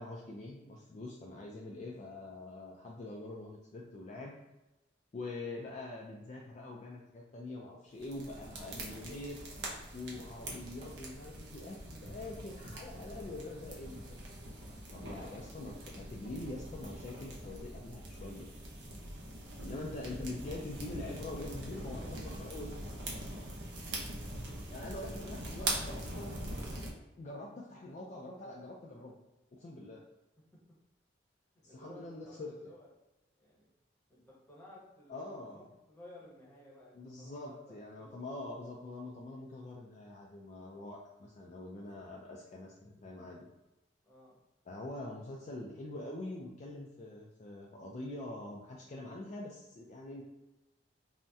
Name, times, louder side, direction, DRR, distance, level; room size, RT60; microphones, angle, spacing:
voice 1, 0.0-4.3 5.1-9.4 9.9-14.2 14.9-18.5 19.6-22.7 24.7-26.7 27.2-29.2 29.5-30.0 31.6-32.5 35.1-35.6 37.0-43.5 44.7-50.2, left 2 dB, 40° left, -2 dB, 0.3 m, -44 dB
sound 1, 8.0-26.9, right 1 dB, 65° right, 0.6 m, -43 dB
voice 2, 31.5-32.9 33.4-33.7 34.1-38.7 41.7-41.8 44.0-44.4, left 1 dB, 10° left, -6 dB, 0.8 m, -56 dB
2.6 x 2.1 x 3.4 m, 0.99 s
head